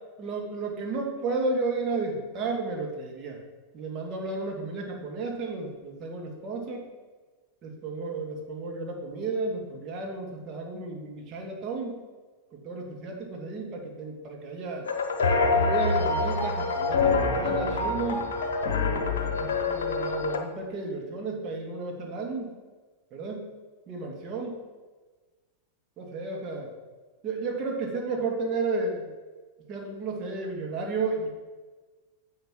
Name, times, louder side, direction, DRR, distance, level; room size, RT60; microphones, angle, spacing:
voice 1, 0.2-3.4 3.7-6.8 7.6-12.0 12.5-14.9 15.6-18.3 19.4-22.5 23.1-23.5 23.9-24.6 26.0-26.7 27.2-29.1 29.7-31.3, right 3 dB, 35° right, 0 dB, 1.9 m, -32 dB
sound 1, 14.9-20.4, left 3 dB, 60° left, 1.0 m, -26 dB
9.6 x 6.5 x 4.4 m, 1.3 s
figure-of-eight pair, 90°, 0 cm